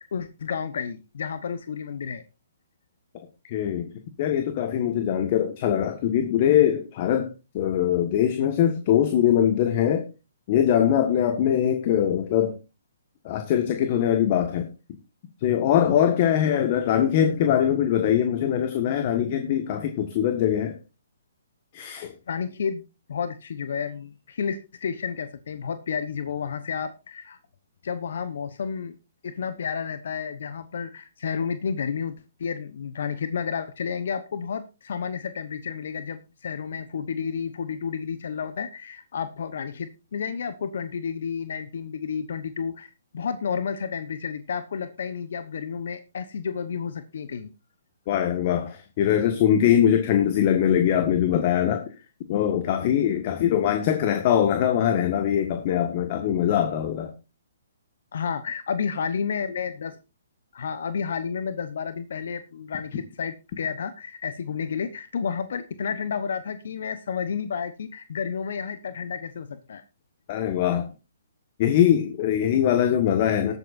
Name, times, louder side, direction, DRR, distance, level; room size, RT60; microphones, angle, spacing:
voice 1, 0.1-2.2 22.3-22.8 23.1-27.4 27.8-28.9 29.2-47.5 58.1-60.0 60.5-69.8, left 6 dB, 60° left, 12 dB, 1.0 m, -31 dB
voice 2, 3.5-3.9 4.2-10.0 10.5-12.5 13.2-14.7 15.4-20.8 21.7-22.1 48.1-51.8 52.3-57.1 70.3-70.9 71.6-73.5, left 10 dB, 40° left, 6 dB, 1.5 m, -22 dB
20.0 x 8.2 x 2.6 m, 0.29 s
figure-of-eight pair, 130°, 0 cm